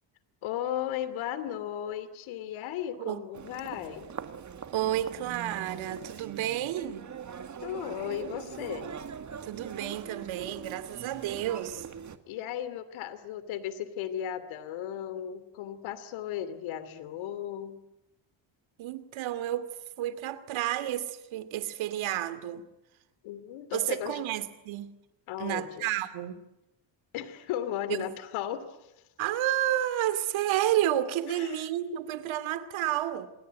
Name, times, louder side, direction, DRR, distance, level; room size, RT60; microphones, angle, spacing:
voice 1, 0.4-4.1 7.6-8.9 12.3-17.8 23.2-24.2 25.3-25.9 27.1-28.9 31.3-31.6, left 10 dB, 90° left, 2.8 m, -36 dB
Human voice, 3.3-12.2, right 7 dB, 40° right, 2.1 m, -42 dB
voice 2, 4.7-7.1 9.4-11.9 18.8-19.7 20.0-22.6 23.7-24.9 25.4-26.4 27.9-28.0 29.2-33.3, right 12 dB, 80° right, 2.6 m, -31 dB
27.5 x 22.0 x 9.4 m
cardioid pair, 105°, 46 cm